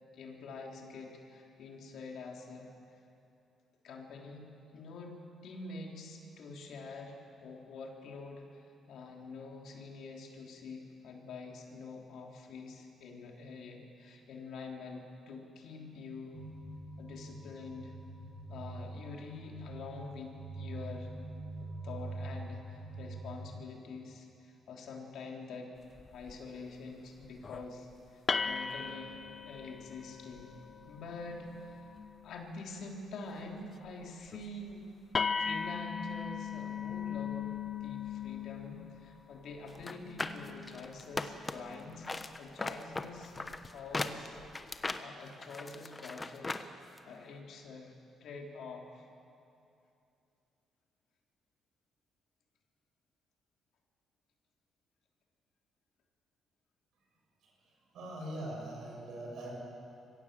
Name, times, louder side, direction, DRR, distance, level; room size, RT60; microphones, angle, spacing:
voice 1, 0.1-2.7 3.8-5.2 5.4-16.4 17.0-17.9 18.5-21.1 21.6-25.7 26.1-30.5 30.9-31.9 32.2-34.9 35.4-37.5 37.8-42.1 42.4-44.4 45.0-46.7 47.0-47.9 48.2-49.1, left 3 dB, 75° left, 0 dB, 3.4 m, -46 dB
sound 1, 16.3-23.5, right 2 dB, 60° right, 2.7 m, -44 dB
sound 2, 26.0-26.4 27.2-27.7 28.3-32.6 34.3-34.4 34.7-34.8 35.1-42.2 43.5-43.7 44.3-44.7, left 6 dB, 40° left, 0.8 m, -39 dB
sound 3, 39.8-41.7 42.0-46.7 47.0-47.1, left 3 dB, 25° left, 1.1 m, -38 dB
voice 2, 57.9-59.6, right 1 dB, 75° right, -2 dB, 7.5 m, -41 dB
24.5 x 16.0 x 7.6 m, 2.7 s
cardioid pair, 90°, 0 cm